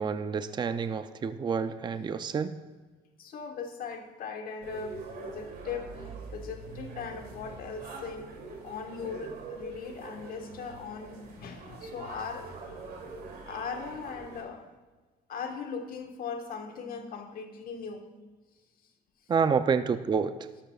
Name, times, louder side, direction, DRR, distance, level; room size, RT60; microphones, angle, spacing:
voice 1, 0.0-2.5 19.3-20.3, right 6 dB, 25° right, 11 dB, 0.5 m, -28 dB
voice 2, 3.2-12.5 13.5-14.7 15.3-18.1, left 5 dB, 60° left, 4 dB, 1.4 m, -39 dB
sound 1, 4.6-14.4, right 3 dB, 65° right, 2.7 m, -44 dB
12.5 x 12.0 x 2.4 m, 1.3 s
cardioid pair, 110°, 17 cm